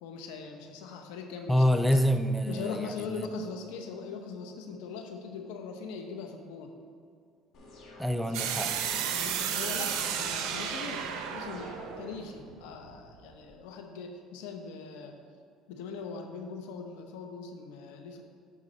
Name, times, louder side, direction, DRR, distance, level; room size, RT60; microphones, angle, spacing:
voice 1, 0.0-2.0 2.5-6.7 9.1-15.2 15.7-18.2, left 5 dB, 90° left, 4 dB, 0.8 m, -41 dB
voice 2, 1.5-2.9 8.0-8.7, equal, ahead, 8 dB, 0.4 m, -26 dB
sound 1, 7.5-11.9, left 2 dB, 60° left, 2.0 m, -50 dB
sound 2, 8.3-13.2, right 8 dB, 75° right, 0.7 m, -33 dB
8.4 x 5.3 x 4.1 m, 2.3 s
supercardioid pair, 105°, 0 cm